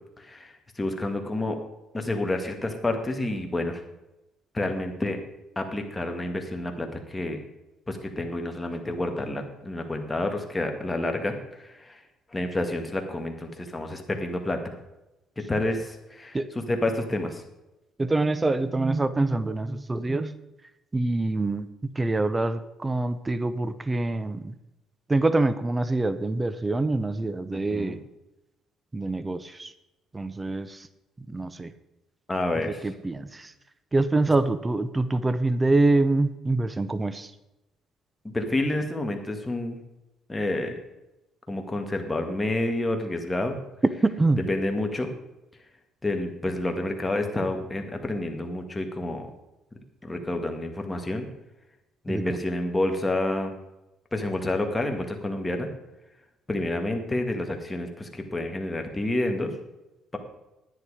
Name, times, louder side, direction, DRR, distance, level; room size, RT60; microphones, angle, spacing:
voice 1, 0.2-1.6 1.9-3.8 4.5-5.2 5.6-7.4 7.9-12.0 12.3-14.8 15.4-17.4 27.5-28.0 32.3-32.8 38.2-39.8 40.3-40.7 41.5-43.6 44.5-45.1 46.0-49.3 50.0-51.3 52.0-53.5 54.1-55.7 56.5-59.5, left 1 dB, 15° left, 4 dB, 1.9 m, -29 dB
voice 2, 18.0-20.4 20.9-21.7 21.9-24.5 25.1-28.0 28.9-29.7 30.1-30.9 31.2-31.7 32.6-33.5 33.9-37.3 44.0-44.5 52.1-52.4, right 2 dB, 20° right, 13 dB, 0.7 m, -25 dB
10.5 x 9.7 x 4.9 m, 0.97 s
cardioid pair, 100°, 0 cm